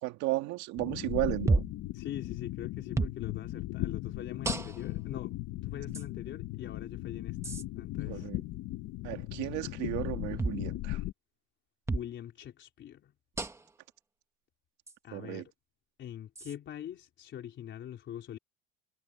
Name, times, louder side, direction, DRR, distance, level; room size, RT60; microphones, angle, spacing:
voice 1, 0.0-1.6 8.1-8.4 9.0-11.0 15.1-15.4, right 19 dB, 70° right, 1.9 m, -34 dB
sound 1, 0.8-11.1, left 17 dB, 55° left, 1.2 m, -38 dB
sound 2, 1.5-1.8 2.9-3.2 4.4-5.0 5.9-6.1 7.4-7.6 10.4-10.6 11.9-12.1 13.4-13.7 14.9-15.0 16.4-16.6, right 3 dB, 10° right, 1.4 m, -31 dB
voice 2, 1.9-5.4 5.6-8.3 11.9-13.1 15.0-15.5 16.0-18.4, left 10 dB, 40° left, 3.8 m, -43 dB
cardioid pair, 160°, 30 cm